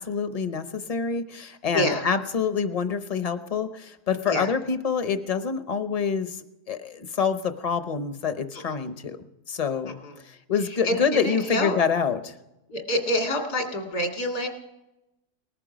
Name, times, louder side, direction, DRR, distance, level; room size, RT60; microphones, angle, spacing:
voice 1, 0.0-9.2 9.5-10.0 10.5-12.3, left 6 dB, 35° left, 10 dB, 0.6 m, -26 dB
voice 2, 8.5-8.9 9.9-10.2 10.6-11.8 12.7-14.5, left 1 dB, 80° left, 2 dB, 2.8 m, -28 dB
19.5 x 14.0 x 5.1 m, 0.91 s
omnidirectional pair, 1.7 m